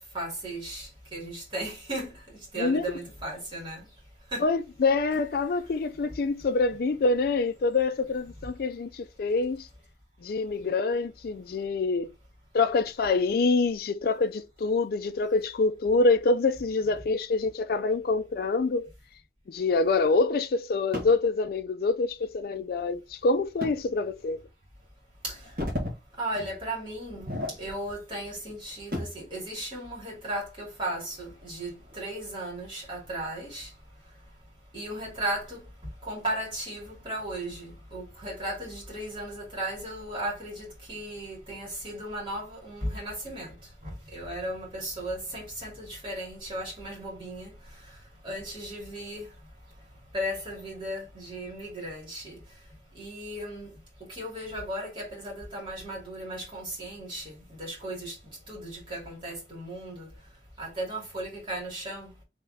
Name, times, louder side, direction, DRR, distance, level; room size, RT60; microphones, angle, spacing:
voice 1, 0.1-3.9 4.3-4.5 25.2-25.5 26.2-27.3 27.6-33.7 34.7-43.5 43.8-49.3 50.1-52.4 52.9-53.7 54.1-58.2 58.5-60.1 60.6-62.1, right 1 dB, 25° right, 2.4 m, -36 dB
voice 2, 4.4-9.7 10.2-12.1 12.5-18.9 19.5-24.4, left 3 dB, 55° left, 0.4 m, -26 dB
sound 1, 20.9-21.2 23.6-23.8 24.3-24.4 25.3-26.0 26.3-26.6 27.1-28.0 28.3-29.3 30.8-31.9 32.4-32.5 33.2-33.6, left 1 dB, 50° right, 1.4 m, -35 dB
3.5 x 3.2 x 3.9 m
head